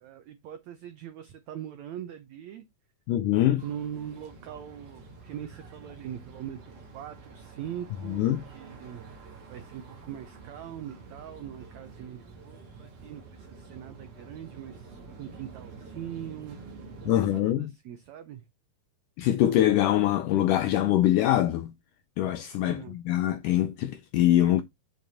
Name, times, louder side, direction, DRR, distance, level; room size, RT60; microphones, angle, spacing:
voice 1, 0.0-2.6 3.6-9.1 9.5-16.6 17.1-18.4 22.7-23.0, right 10 dB, 85° right, 1.6 m, -41 dB
voice 2, 3.1-3.6 8.1-8.4 17.1-17.7 19.2-21.7 22.2-24.6, left 13 dB, 85° left, 1.8 m, -24 dB
sound 1, 3.6-17.4, right 4 dB, 55° right, 3.6 m, -48 dB
7.8 x 7.5 x 2.8 m
omnidirectional pair, 4.3 m